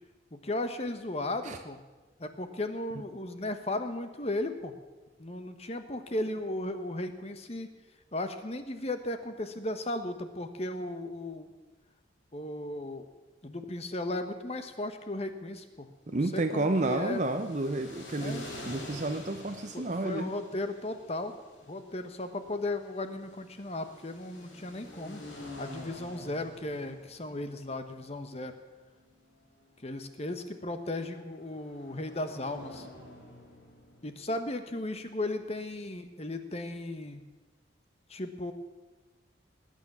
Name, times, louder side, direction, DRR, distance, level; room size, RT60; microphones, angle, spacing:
voice 1, 0.3-1.8 2.2-4.8 5.2-7.7 8.1-11.5 12.3-13.1 13.4-17.2 18.2-18.5 19.7-21.4 21.7-25.2 25.6-28.6 29.8-32.9 34.0-37.2 38.1-38.5, left 1 dB, 35° left, 8 dB, 1.2 m, -36 dB
voice 2, 16.1-20.3, right 2 dB, 40° right, 6 dB, 0.7 m, -31 dB
sound 1, 16.3-34.1, left 1 dB, 80° left, 4.5 m, -48 dB
19.5 x 9.3 x 7.3 m, 1.2 s
head